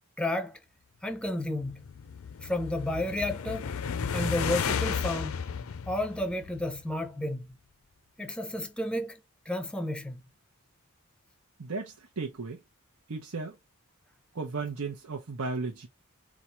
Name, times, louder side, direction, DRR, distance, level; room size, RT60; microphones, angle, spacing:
voice 1, 0.2-0.6 1.0-1.8 2.4-3.7 4.1-5.4 5.9-7.5 8.2-9.2 9.5-10.2, left 1 dB, 5° left, 0.6 m, -32 dB
sound 1, 1.4-6.9, left 6 dB, 70° left, 0.4 m, -33 dB
voice 2, 11.6-12.6 13.1-13.5 14.3-15.9, right 4 dB, 80° right, 0.9 m, -35 dB
4.2 x 2.4 x 4.3 m
head